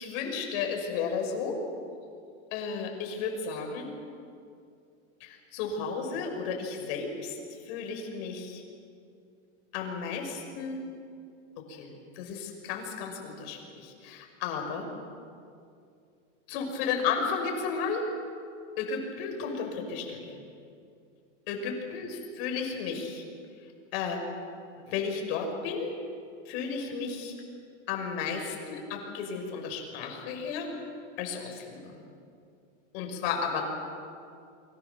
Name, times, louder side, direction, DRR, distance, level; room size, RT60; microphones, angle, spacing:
voice 1, 0.0-1.6 2.5-3.9 5.2-7.4 7.7-8.6 9.7-10.8 11.6-14.9 16.5-18.1 18.8-20.4 21.5-23.2 23.9-24.2 24.8-26.0 26.4-27.3 27.9-30.7 31.2-32.0 32.9-33.6, left 5 dB, 50° left, 3 dB, 6.5 m, -33 dB
29.0 x 24.5 x 7.3 m, 2.4 s
supercardioid pair, 155°, 39 cm